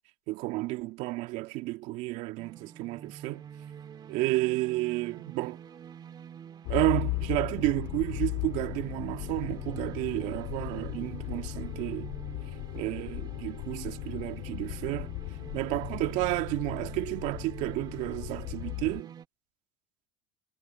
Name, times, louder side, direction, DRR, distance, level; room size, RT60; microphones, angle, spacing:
voice 1, 0.3-3.4 4.1-5.6 6.7-12.1 12.7-15.1 15.5-19.1, right 19 dB, 60° right, 2.3 m, -31 dB
sound 1, 2.4-19.3, right 8 dB, 30° right, 1.8 m, -47 dB
Motor vehicle (road), 6.6-19.0, left 25 dB, 65° left, 1.9 m, -37 dB
supercardioid pair, 115°, 14 cm